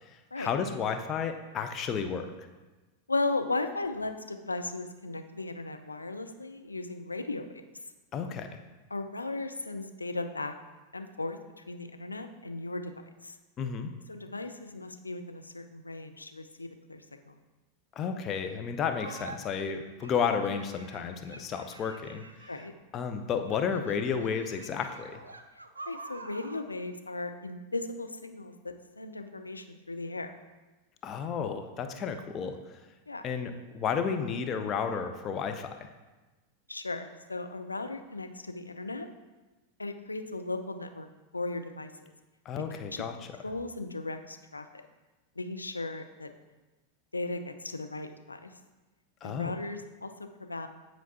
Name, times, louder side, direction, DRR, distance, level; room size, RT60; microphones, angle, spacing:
voice 1, 0.4-2.3 8.1-8.5 13.6-13.9 18.0-22.2 22.9-25.2 31.0-32.6 33.2-35.8 42.5-43.1 49.2-49.5, left 6 dB, 30° left, 7 dB, 0.6 m, -32 dB
voice 2, 3.1-7.5 7.7-7.8 8.9-10.5 10.9-12.9 13.2-13.4 14.1-17.4 22.5-22.7 25.6-30.3 33.1-33.2 36.7-39.1 39.8-42.1 43.4-44.8 45.4-46.3 47.1-48.6 49.2-50.1 50.4-50.7, left 2 dB, 80° left, 7 dB, 0.4 m, -36 dB
sound 1, 18.9-19.4 20.0-22.8 23.4-26.7, right 2 dB, 80° right, 0.5 m, -47 dB
9.3 x 4.5 x 2.8 m, 1.2 s
figure-of-eight pair, 90°, 0 cm